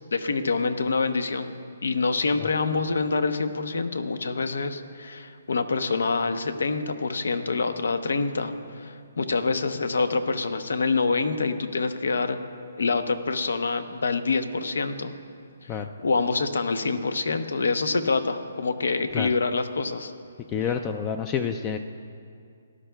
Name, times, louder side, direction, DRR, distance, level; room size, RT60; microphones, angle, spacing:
voice 1, 0.0-12.4 12.8-15.1 15.6-20.1 20.6-20.8, left 4 dB, 80° left, 10 dB, 0.8 m, -26 dB
voice 2, 20.5-21.8, left 7 dB, 20° left, 7 dB, 0.3 m, -28 dB
18.0 x 11.0 x 2.3 m, 2.3 s
hypercardioid pair, 160°, 0 cm